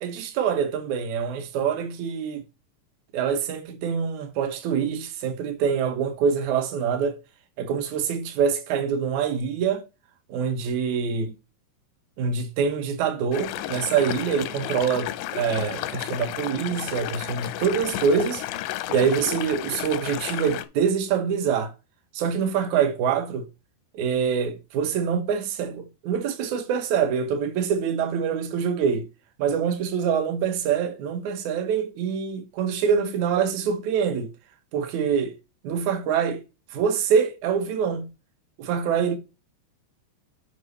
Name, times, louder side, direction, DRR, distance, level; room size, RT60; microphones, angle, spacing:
voice 1, 0.0-2.4 3.1-7.2 7.6-9.9 10.3-11.3 12.2-18.4 18.9-21.7 22.1-23.5 23.9-29.1 29.4-34.3 34.7-35.4 35.6-36.4 36.7-38.1 38.6-39.2, right 7 dB, 70° right, 1.8 m, -25 dB
sound 1, 13.3-20.6, left 14 dB, 85° left, 2.8 m, -32 dB
7.9 x 5.4 x 3.2 m
omnidirectional pair, 5.0 m